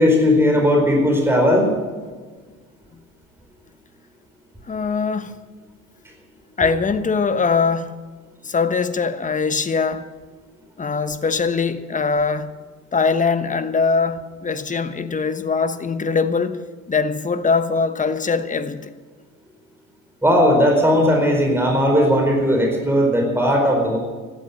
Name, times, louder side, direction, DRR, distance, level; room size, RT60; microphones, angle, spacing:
voice 1, 0.0-1.7 20.2-24.0, equal, 5° right, 4.6 m, -17 dB
voice 2, 4.7-5.3 6.6-7.9 8.4-10.0 10.8-12.5 12.9-16.6 16.9-18.9, left 5 dB, 20° left, 1.1 m, -22 dB
16.5 x 12.5 x 6.1 m
hypercardioid pair, 65°, 42 cm